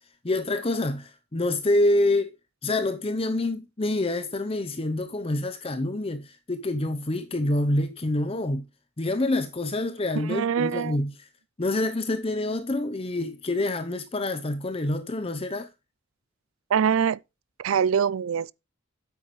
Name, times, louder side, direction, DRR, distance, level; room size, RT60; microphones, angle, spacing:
voice 1, 0.2-2.3 2.6-8.6 9.0-11.3 11.6-15.7, left 2 dB, 30° left, 0.7 m, -27 dB
voice 2, 10.3-11.0 16.7-17.2 17.6-18.5, right 7 dB, 75° right, 0.4 m, -23 dB
9.0 x 8.3 x 3.1 m
head